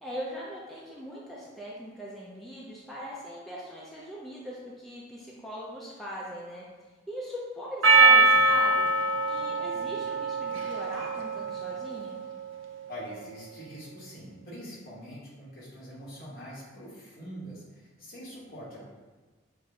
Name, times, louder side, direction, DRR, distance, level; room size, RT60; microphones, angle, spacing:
voice 1, 0.0-6.6 7.1-8.8 9.2-12.2, equal, ahead, -6 dB, 0.5 m, -40 dB
Percussion, 7.8-12.4, right 3 dB, 75° right, 0.5 m, -23 dB
voice 2, 12.9-18.8, equal, 50° left, -6 dB, 1.5 m, -44 dB
6.3 x 2.2 x 3.8 m, 1.3 s
head